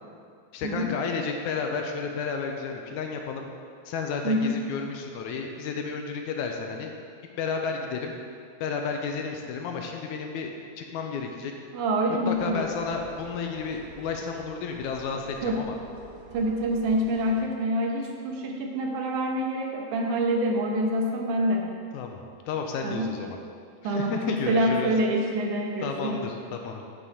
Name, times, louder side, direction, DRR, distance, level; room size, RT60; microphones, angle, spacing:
voice 1, 0.5-3.5 3.9-6.9 7.4-8.1 8.6-10.5 10.8-11.5 12.3-15.8 21.9-22.2 22.5-23.4 23.8-24.9 25.8-26.8, left 5 dB, 80° left, 3 dB, 2.0 m, -32 dB
voice 2, 4.2-4.6 11.7-12.7 15.4-15.6 16.3-21.7 22.8-23.1 23.8-26.3, right 1 dB, 75° right, 0 dB, 2.5 m, -26 dB
sound 1, 12.3-17.4, right 2 dB, 55° right, 1.5 m, -48 dB
9.4 x 7.4 x 4.9 m, 2.2 s
omnidirectional pair, 3.6 m